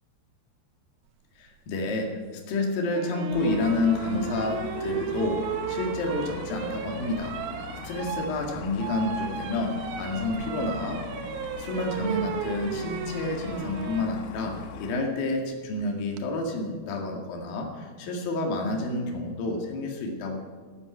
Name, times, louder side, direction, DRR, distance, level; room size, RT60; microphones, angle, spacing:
voice 1, 1.4-2.1 2.5-7.4 7.8-9.7 10.0-11.0 11.6-14.5 14.8-20.4, left 2 dB, 60° left, 1 dB, 3.5 m, -29 dB
sound 1, 2.9-14.1 15.8-16.2, right 7 dB, 70° right, 2.5 m, -35 dB
sound 2, 3.3-14.9, left 6 dB, 85° left, 3.3 m, -41 dB
13.0 x 9.9 x 9.2 m, 1.5 s
omnidirectional pair, 4.9 m